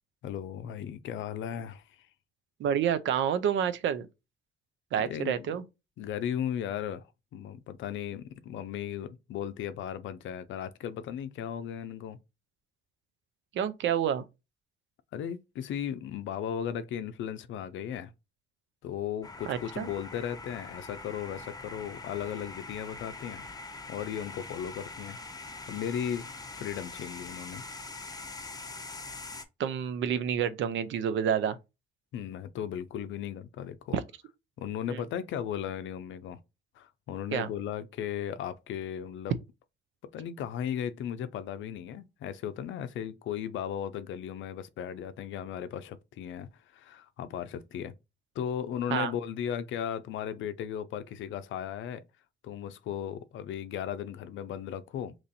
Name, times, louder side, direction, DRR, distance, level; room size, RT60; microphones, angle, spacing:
voice 1, 0.2-1.8 5.0-5.5 6.0-7.0 7.3-12.2 15.1-18.1 18.8-23.5 23.9-25.2 25.7-27.6 32.1-34.0 34.6-36.4 36.8-39.3 40.1-46.5 46.7-47.9 48.4-52.0 52.4-55.1, left 9 dB, 75° left, 0.5 m, -36 dB
voice 2, 2.6-4.1 4.9-5.6 13.5-14.2 19.5-19.9 29.6-31.6 34.9-35.0 37.3-37.5 48.9-49.1, right 8 dB, 70° right, 0.5 m, -28 dB
sound 1, 19.2-29.4, left 3 dB, 20° left, 0.6 m, -43 dB
3.0 x 2.6 x 4.0 m
cardioid pair, 90°, 20 cm